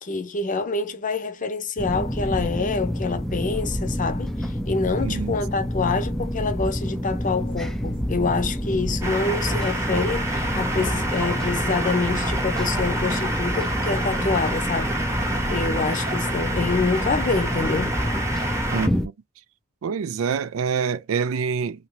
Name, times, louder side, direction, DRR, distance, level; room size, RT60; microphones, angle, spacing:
voice 1, 0.0-15.0 15.5-18.0, left 4 dB, 40° left, 0.6 m, -26 dB
sound 1, 1.8-19.1, equal, ahead, 0.4 m, -28 dB
voice 2, 5.0-5.3 15.7-15.9 18.7-19.1 19.8-21.9, right 6 dB, 90° right, 0.4 m, -26 dB
sound 2, 7.4-17.6, right 2 dB, 40° right, 0.8 m, -42 dB
sound 3, 9.0-18.9, right 1 dB, 15° right, 0.9 m, -28 dB
2.9 x 2.7 x 3.0 m
head